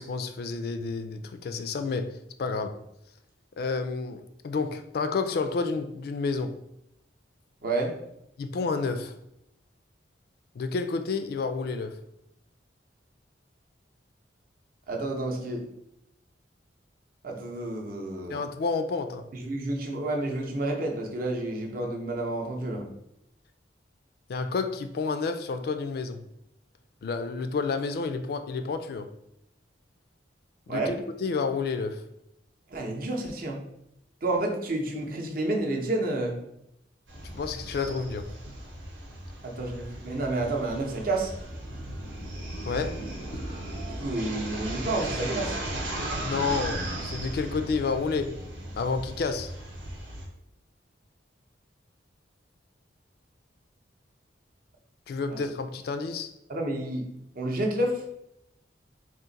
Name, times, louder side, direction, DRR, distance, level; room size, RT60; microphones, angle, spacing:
voice 1, 0.0-2.8 3.6-6.6 8.4-9.2 10.6-12.0 18.3-19.3 24.3-26.2 27.0-29.1 30.7-32.1 37.2-38.3 42.7-43.0 46.2-48.4 48.8-49.5 55.1-56.3, left 4 dB, 55° left, 9 dB, 0.3 m, -30 dB
voice 2, 7.6-7.9 14.9-15.6 17.2-18.4 19.3-22.8 30.7-30.9 32.7-33.6 34.2-36.4 39.4-41.3 43.9-45.6 55.3-55.4 56.5-57.1 57.4-58.0, right 2 dB, 50° right, 1 dB, 0.7 m, -30 dB
sound 1, 37.1-50.3, right 1 dB, 90° right, 1.1 m, -36 dB
3.7 x 2.5 x 3.9 m, 0.79 s
head